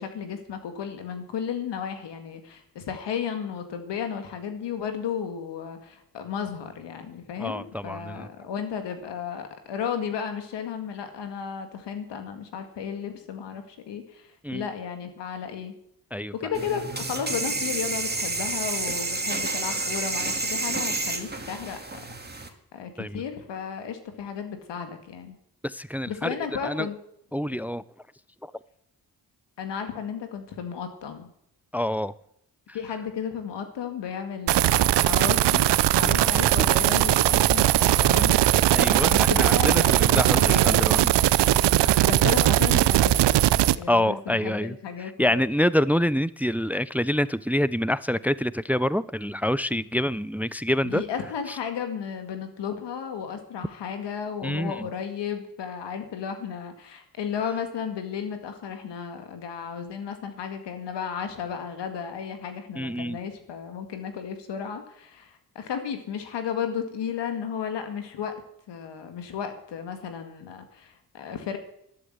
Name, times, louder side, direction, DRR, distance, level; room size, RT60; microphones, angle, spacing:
voice 1, 0.0-15.8 16.3-21.8 22.3-25.4 26.1-27.0 27.5-27.6 29.6-31.3 32.7-38.4 39.0-41.0 42.0-43.4 43.8-45.4 50.8-68.3 68.7-71.6, left 7 dB, 90° left, 7 dB, 2.0 m, -34 dB
voice 2, 7.4-8.3 14.4-14.7 16.1-16.3 23.0-23.2 25.6-26.4 26.6-26.9 27.3-27.8 28.4-28.5 31.7-32.1 38.7-41.1 41.8-42.1 43.9-51.0 51.5-51.6 54.4-54.9 62.8-63.2, left 1 dB, 5° right, 18 dB, 0.5 m, -26 dB
sound 1, 16.5-22.5, right 3 dB, 25° right, 2.4 m, -30 dB
sound 2, 34.5-43.8, right 14 dB, 80° right, 0.6 m, -20 dB
12.0 x 11.5 x 8.1 m, 0.74 s
cardioid pair, 50°, 41 cm